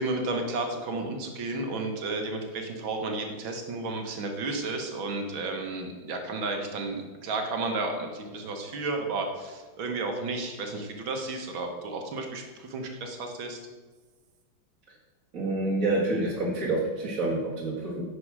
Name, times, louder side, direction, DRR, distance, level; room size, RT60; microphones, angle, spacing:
voice 1, 0.0-13.6, right 3 dB, 75° right, 4 dB, 2.1 m, -32 dB
voice 2, 15.3-18.0, right 2 dB, 40° right, -7 dB, 2.1 m, -28 dB
9.9 x 6.0 x 6.1 m, 1.3 s
omnidirectional pair, 2.2 m